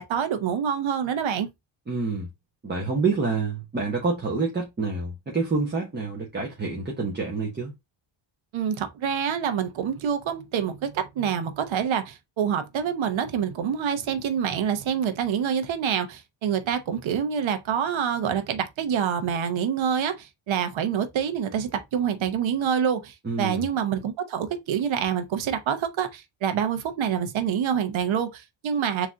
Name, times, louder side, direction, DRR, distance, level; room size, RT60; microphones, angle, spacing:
voice 1, 0.0-1.5 8.5-29.1, right 8 dB, 70° right, 1.0 m, -26 dB
voice 2, 1.9-2.3 2.6-7.7 23.2-23.7, right 4 dB, 20° right, 1.1 m, -27 dB
3.9 x 3.1 x 3.6 m
cardioid pair, 130°, 49 cm